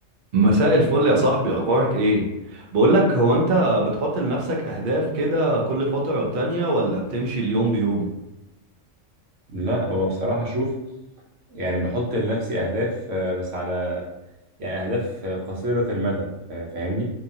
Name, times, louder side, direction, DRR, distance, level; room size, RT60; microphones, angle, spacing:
voice 1, 0.3-2.2 2.5-8.1, right 1 dB, 55° right, -2 dB, 0.6 m, -21 dB
voice 2, 9.5-10.7 11.5-14.0 14.6-17.1, equal, 70° right, -3 dB, 1.1 m, -26 dB
2.7 x 2.3 x 2.7 m, 0.97 s
omnidirectional pair, 1.3 m